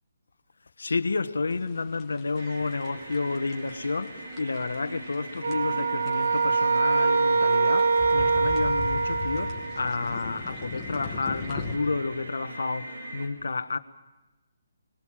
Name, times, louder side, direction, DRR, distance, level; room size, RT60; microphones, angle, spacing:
voice 1, 0.8-13.8, left 3 dB, 85° left, 1.3 m, -30 dB
sound 1, 1.5-11.8, left 4 dB, 20° left, 2.5 m, -39 dB
sound 2, 2.4-13.3, right 1 dB, 85° right, 4.5 m, -41 dB
sound 3, 5.4-9.8, right 4 dB, 65° right, 1.3 m, -24 dB
24.5 x 21.0 x 7.4 m
hypercardioid pair, 155°, 0 cm